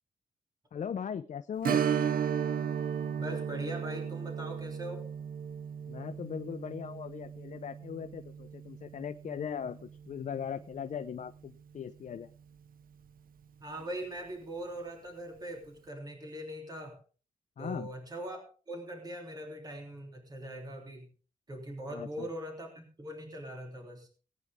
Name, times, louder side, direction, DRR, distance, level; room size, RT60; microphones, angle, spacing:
voice 1, 0.7-1.8 5.9-12.3 17.6-17.9 21.9-22.3, left 7 dB, 60° left, 10 dB, 0.6 m, -39 dB
Strum, 1.6-10.8 11.1-11.2 13.8-14.0 14.4-14.5, right 8 dB, 85° right, 0.7 m, -35 dB
voice 2, 3.2-5.1 13.6-17.0 17.6-21.1 21.5-24.1, right 1 dB, 25° right, 2 dB, 3.2 m, -41 dB
19.0 x 9.5 x 3.6 m, 0.37 s
wide cardioid pair, 150°, 14 cm